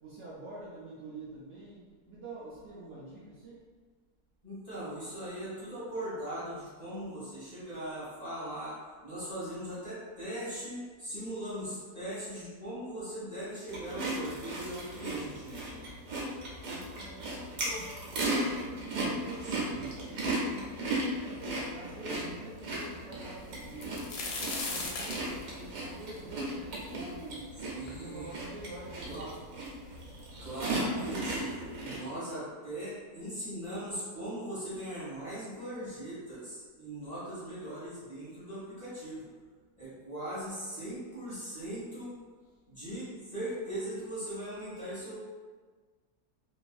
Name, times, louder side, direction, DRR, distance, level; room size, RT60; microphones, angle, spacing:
voice 1, 0.0-3.6 11.2-11.3 16.7-18.3 18.7-19.8 20.3-20.9 21.4-24.2 24.6-27.5 27.9-29.4, right 2 dB, 65° right, -8 dB, 0.8 m, -46 dB
voice 2, 4.4-15.8 19.7-20.0 27.7-28.3 29.1-29.3 30.4-39.3 39.8-42.2 42.7-45.2, right 1 dB, 30° left, -11 dB, 1.0 m, -39 dB
sound 1, 13.7-32.0, right 1 dB, 85° right, 1.3 m, -36 dB
sound 2, 23.6-27.4 27.9-28.0 28.7-28.8 29.1-29.8 30.7-30.8 31.1-31.3, left 3 dB, 85° left, 1.1 m, -38 dB
3.0 x 2.5 x 2.3 m, 1.4 s
omnidirectional pair, 1.7 m